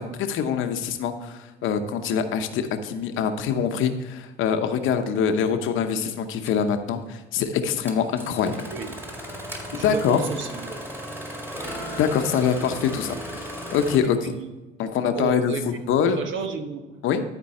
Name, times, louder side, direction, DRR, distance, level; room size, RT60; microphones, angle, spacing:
voice 1, 0.0-8.6 9.7-10.2 12.0-14.3 14.8-15.5 15.9-16.2 17.0-17.2, left 7 dB, 85° left, 7 dB, 0.9 m, -24 dB
Engine starting, 5.2-5.3 6.4-6.6 7.8-14.0, equal, 10° right, 2.0 m, -36 dB
voice 2, 8.7-9.0 9.7-10.8 14.0-14.5 15.1-15.6 16.1-16.8, right 4 dB, 75° right, 6 dB, 1.2 m, -32 dB
12.5 x 4.6 x 4.3 m, 1.2 s
cardioid pair, 90°, 20 cm